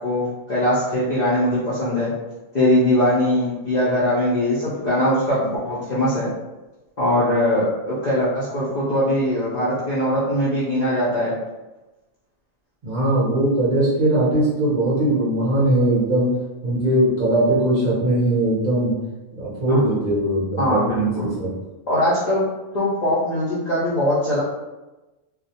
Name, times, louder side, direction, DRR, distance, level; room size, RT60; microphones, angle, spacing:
voice 1, 0.0-2.1 2.5-6.3 7.0-11.3 19.7-19.8 20.6-21.3 21.9-22.4 22.7-24.4, left 1 dB, 55° left, -9 dB, 0.5 m, -21 dB
voice 2, 12.8-16.3 16.6-18.9 19.3-21.5, right 1 dB, 45° right, -9 dB, 0.6 m, -20 dB
2.3 x 2.0 x 2.7 m, 1.1 s
omnidirectional pair, 1.4 m